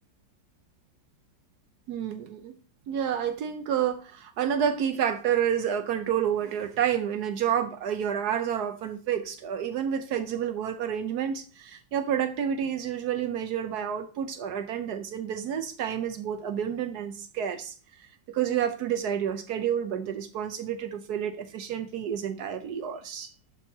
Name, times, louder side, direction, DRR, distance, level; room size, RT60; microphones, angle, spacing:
voice 1, 1.9-2.6 2.9-17.7 18.3-23.3, right 9 dB, 65° right, 8 dB, 1.1 m, -29 dB
11.5 x 4.5 x 2.8 m, 0.38 s
omnidirectional pair, 1.9 m